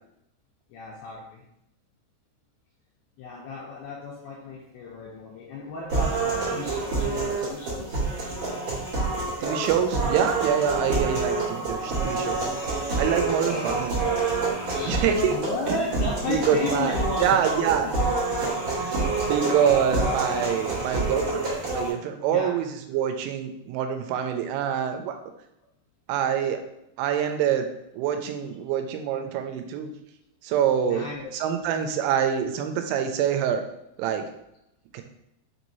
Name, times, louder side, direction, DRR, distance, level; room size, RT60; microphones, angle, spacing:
voice 1, 0.7-1.4 3.2-8.0 13.2-13.7 14.6-17.4 17.8-18.0 18.5-18.6 22.3-22.6 30.8-31.3, left 2 dB, 85° left, -3 dB, 2.3 m, -34 dB
sound 1, 5.9-21.9, right 3 dB, 65° right, 1.6 m, -27 dB
voice 2, 9.4-12.5 13.0-14.1 14.8-15.8 16.3-16.9 17.2-17.9 18.8-18.9 19.2-21.4 21.7-25.2 26.1-26.6 27.0-27.7 27.9-29.9 30.4-31.1 31.3-33.6 34.0-34.3 34.9-35.0, right 8 dB, 85° right, 6 dB, 2.9 m, -25 dB
6.6 x 3.0 x 2.6 m, 0.80 s
omnidirectional pair, 5.3 m